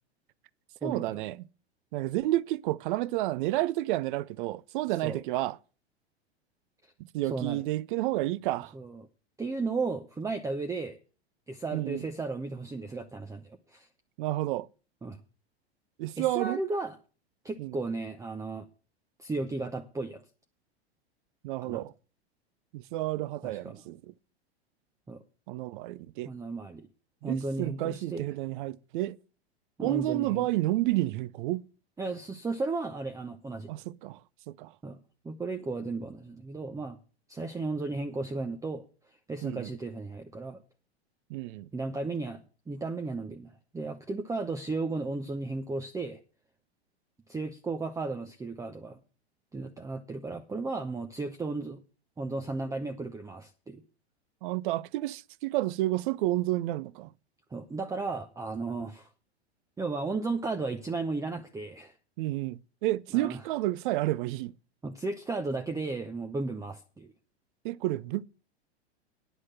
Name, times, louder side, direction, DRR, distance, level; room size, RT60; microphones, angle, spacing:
voice 1, 0.8-1.4 1.9-5.6 7.1-8.7 11.7-12.0 14.2-14.7 16.0-16.6 17.6-17.8 21.4-21.9 22.7-24.1 25.5-26.3 27.2-29.2 29.8-31.7 33.7-34.2 34.5-34.7 39.4-39.7 41.3-41.7 54.4-57.1 62.2-64.5 67.6-68.2, right 16 dB, 50° right, 0.6 m, -30 dB
voice 2, 7.3-7.6 8.7-9.1 9.4-11.0 11.5-13.9 15.0-15.2 16.2-17.0 17.4-18.7 19.2-20.2 21.6-21.8 23.4-23.8 25.1-25.2 26.2-26.9 27.2-28.2 29.8-30.5 32.0-33.7 34.8-35.0 35.2-37.0 37.3-38.8 39.3-40.6 41.7-46.2 47.3-49.0 49.5-51.8 52.2-53.8 57.5-59.1 59.8-61.9 63.1-63.4 64.8-67.1, right 3 dB, 10° right, 0.8 m, -34 dB
10.0 x 6.4 x 7.5 m
figure-of-eight pair, 95°, 33 cm